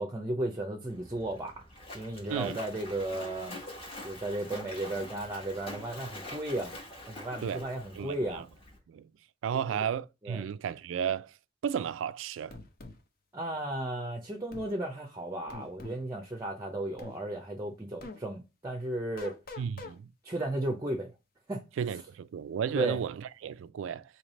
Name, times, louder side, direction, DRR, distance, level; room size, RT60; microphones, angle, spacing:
voice 1, 0.0-1.6 1.9-3.7 4.0-6.8 7.1-8.4 9.7-9.8 10.2-10.4 13.3-19.4 20.2-21.1 21.5-21.6 22.7-23.0, right 1 dB, 20° right, 0.5 m, -34 dB
Splash splatter, 0.9-8.8, left 1 dB, 30° left, 1.2 m, -45 dB
voice 2, 8.0-8.4 8.9-9.1 9.4-11.3 11.6-12.6 19.6-20.1 21.8-24.0, right 8 dB, 80° right, 0.3 m, -33 dB
sound 1, 12.5-13.0 14.5-14.7 15.5-16.0 17.0-17.2 18.0-18.2 19.2-20.0, left 3 dB, 50° left, 0.7 m, -44 dB
3.2 x 2.8 x 4.0 m
head